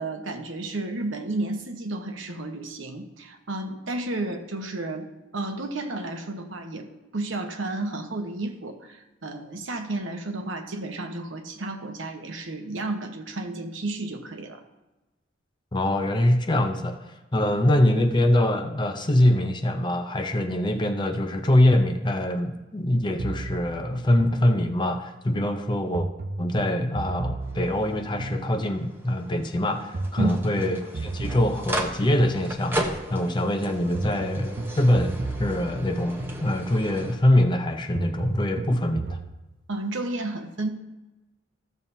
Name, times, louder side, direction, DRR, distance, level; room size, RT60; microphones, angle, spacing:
voice 1, 0.0-6.9 7.1-14.6 30.2-30.4 39.7-40.7, right 2 dB, 85° right, 5 dB, 1.1 m, -32 dB
voice 2, 15.7-26.1 26.4-39.2, left 1 dB, 25° left, 6 dB, 0.6 m, -24 dB
sound 1, 23.2-25.1 25.9-29.0 29.9-33.0 33.9-37.0 37.9-39.3, right 2 dB, 50° right, 0.5 m, -34 dB
sound 2, 27.4-37.1, right 1 dB, 10° right, 0.9 m, -36 dB
14.5 x 7.2 x 2.7 m, 1.1 s
head